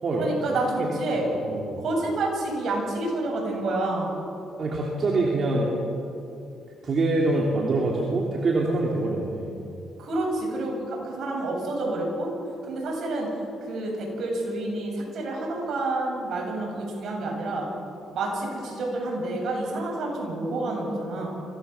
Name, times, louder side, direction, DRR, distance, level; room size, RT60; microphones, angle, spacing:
voice 1, 0.1-1.3 1.8-4.2 10.0-12.3 12.6-13.3 13.6-17.7 18.1-21.3, right 2 dB, 65° right, -1 dB, 7.6 m, -29 dB
voice 2, 1.3-1.8 4.6-5.7 6.8-9.5, right 2 dB, 50° right, -2 dB, 3.3 m, -25 dB
25.0 x 17.5 x 7.3 m, 2.8 s
cardioid pair, 90°, 0 cm